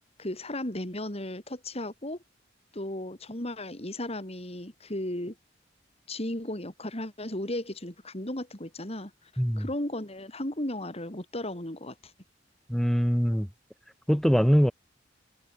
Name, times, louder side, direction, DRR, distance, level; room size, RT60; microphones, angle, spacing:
voice 1, 0.2-2.2 2.7-5.3 6.1-9.3 9.6-12.1, left 1 dB, 35° left, 4.7 m, -35 dB
voice 2, 9.4-9.7 12.7-13.5 14.1-14.7, equal, ahead, 4.8 m, -23 dB
head